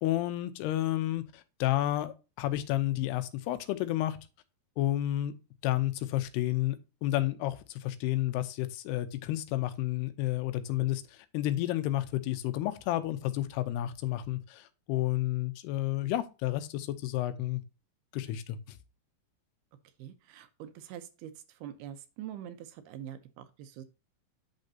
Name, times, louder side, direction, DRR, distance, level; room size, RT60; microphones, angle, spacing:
voice 1, 0.0-4.2 4.8-5.3 5.6-6.8 7.0-17.6 18.1-18.8, left 14 dB, 85° left, 2.8 m, -31 dB
voice 2, 20.0-21.3 21.6-23.8, right 10 dB, 80° right, 2.7 m, -44 dB
9.1 x 6.6 x 2.8 m
omnidirectional pair, 4.7 m